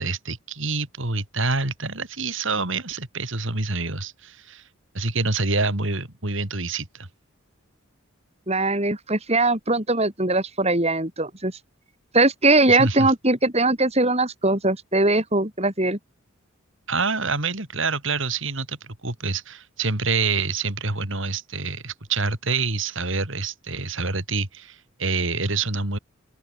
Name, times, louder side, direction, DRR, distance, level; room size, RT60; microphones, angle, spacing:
voice 1, 0.0-4.7 4.9-7.1 12.7-13.1 16.9-26.0, right 3 dB, 65° right, 3.7 m, -27 dB
voice 2, 8.5-11.6 12.1-16.0, right 2 dB, 30° right, 5.8 m, -21 dB
open air
head